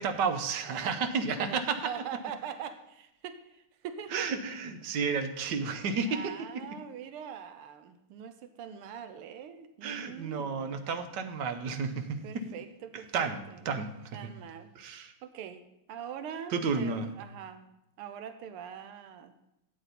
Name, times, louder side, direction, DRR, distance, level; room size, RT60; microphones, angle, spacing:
voice 1, 0.0-1.8 4.1-6.3 9.8-12.2 13.1-13.4 13.6-13.9 14.7-15.1 16.5-17.1, right 5 dB, 60° right, 7 dB, 1.4 m, -31 dB
voice 2, 0.6-1.0 1.4-4.3 6.1-10.9 12.2-13.8 14.1-14.7 15.2-15.6 15.9-17.7 18.0-19.3, right 8 dB, 85° right, 10 dB, 1.6 m, -43 dB
12.5 x 8.5 x 4.1 m, 0.87 s
omnidirectional pair, 2.4 m